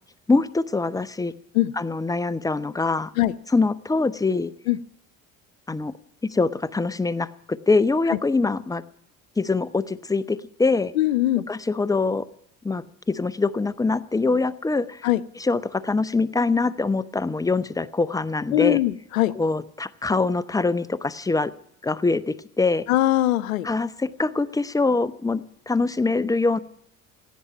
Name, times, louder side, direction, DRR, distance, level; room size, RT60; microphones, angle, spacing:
voice 1, 0.3-1.3 1.8-3.1 3.5-4.5 5.7-5.9 6.3-8.8 9.4-10.9 11.5-12.3 12.6-15.1 15.4-18.8 19.3-21.5 21.8-22.9 23.6-26.6, left 3 dB, 10° left, 17 dB, 0.7 m, -24 dB
voice 2, 11.0-11.5 15.0-15.2 18.5-19.3 22.9-23.7, left 15 dB, 80° left, 19 dB, 0.7 m, -21 dB
16.5 x 9.5 x 9.1 m, 0.73 s
figure-of-eight pair, 55°, 41 cm